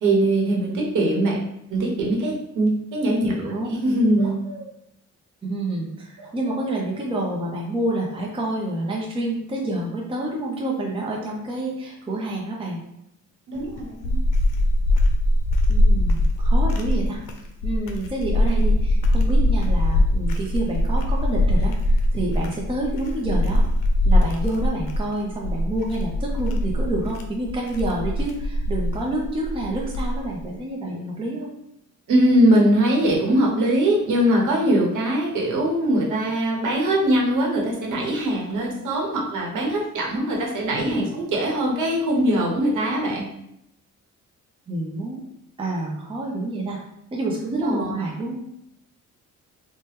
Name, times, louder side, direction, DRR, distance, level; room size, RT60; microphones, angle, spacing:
voice 1, 0.0-1.4 1.7-4.7 6.2-6.6 13.5-14.2 32.1-43.2 47.5-48.0, right 1 dB, 75° right, -1 dB, 1.0 m, -22 dB
voice 2, 3.2-3.7 5.4-12.8 15.7-17.2 17.6-23.6 24.0-31.5 40.8-41.1 44.7-45.2 45.6-46.8 47.1-48.4, right 1 dB, 15° right, -2 dB, 0.6 m, -28 dB
sound 1, 13.6-30.4, left 1 dB, 90° left, 0.5 m, -21 dB
2.9 x 2.2 x 3.2 m, 0.79 s
cardioid pair, 90°, 31 cm